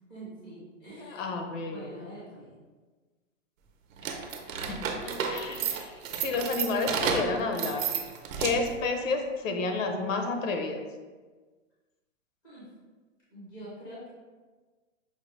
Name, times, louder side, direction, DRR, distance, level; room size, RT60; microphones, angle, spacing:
voice 1, 0.1-1.2 1.7-2.6 12.4-12.7 13.3-14.1, right 1 dB, 5° left, -10 dB, 0.4 m, -45 dB
voice 2, 1.1-1.9 4.7-5.9 6.2-7.8 8.4-10.8, left 3 dB, 75° left, 4 dB, 0.8 m, -30 dB
sound 1, 4.0-8.8, right 6 dB, 85° right, 0.7 m, -32 dB
5.6 x 2.1 x 3.1 m, 1.4 s
hypercardioid pair, 165°, 39 cm